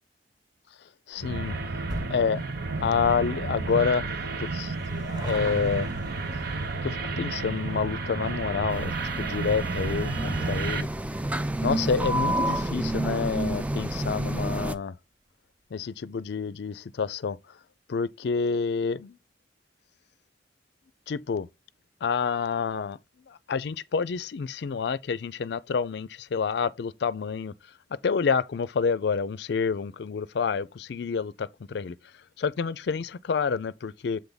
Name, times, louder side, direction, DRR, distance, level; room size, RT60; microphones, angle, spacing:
voice 1, 1.1-1.6 2.1-4.1 4.4-5.9 6.8-10.9 11.6-14.9 15.7-17.4 17.9-19.2 21.1-21.5 22.0-23.0 23.3-27.5 28.0-31.9 32.4-34.2, left 5 dB, 65° left, 0.4 m, -28 dB
sound 1, 1.1-13.9 14.2-14.3 15.1-15.2 15.4-15.5 15.8-15.9, equal, 25° right, 1.1 m, -47 dB
sound 2, 1.2-10.8, right 3 dB, 60° right, 0.8 m, -31 dB
sound 3, 8.7-14.7, right 1 dB, 10° right, 0.4 m, -29 dB
7.5 x 3.4 x 3.9 m
head